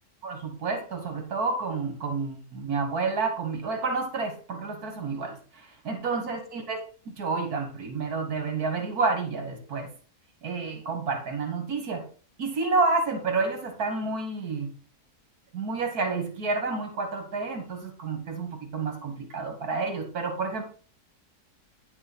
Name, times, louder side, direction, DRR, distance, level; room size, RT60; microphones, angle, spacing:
voice 1, 0.2-6.8 7.1-9.9 10.4-12.0 12.4-14.7 15.5-20.6, right 4 dB, 80° right, 5 dB, 2.1 m, -29 dB
10.0 x 5.6 x 4.3 m, 0.41 s
omnidirectional pair, 1.6 m